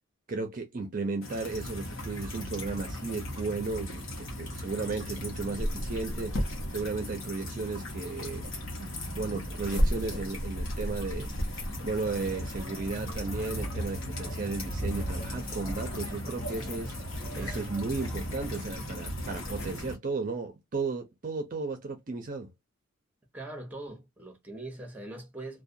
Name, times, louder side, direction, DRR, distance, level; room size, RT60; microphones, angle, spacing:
voice 1, 0.3-6.4 6.7-8.5 8.8-11.3 11.8-16.9 17.4-22.5, right 3 dB, 40° right, 0.5 m, -34 dB
sound 1, 1.2-19.9, left 1 dB, 70° left, 1.0 m, -37 dB
sound 2, 3.1-19.8, equal, 55° left, 0.7 m, -37 dB
sound 3, 11.9-18.6, right 2 dB, 20° left, 1.0 m, -48 dB
voice 2, 17.3-17.7 23.3-25.6, right 2 dB, 10° right, 0.8 m, -42 dB
2.3 x 2.2 x 2.6 m
head